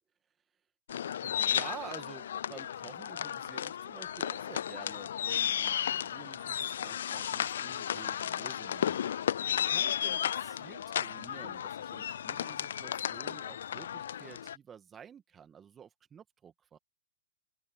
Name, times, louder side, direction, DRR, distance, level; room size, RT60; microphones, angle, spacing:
sound 1, 0.9-14.6, left 9 dB, 70° left, 0.4 m, -34 dB
voice 1, 1.2-9.0 9.5-16.8, right 8 dB, 20° right, 2.0 m, -50 dB
hypercardioid pair, 110°, 0 cm